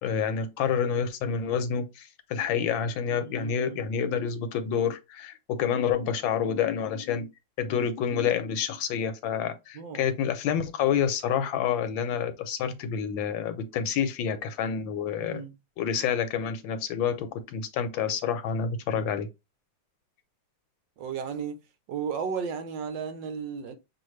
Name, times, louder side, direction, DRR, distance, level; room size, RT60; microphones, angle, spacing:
voice 1, 0.0-7.3 7.6-15.4 15.8-19.3, left 7 dB, 85° left, 1.5 m, -28 dB
voice 2, 3.2-3.9 9.7-10.1 15.2-15.5 21.0-21.6 21.9-23.7, right 6 dB, 75° right, 1.5 m, -34 dB
6.3 x 2.5 x 3.2 m
omnidirectional pair, 2.1 m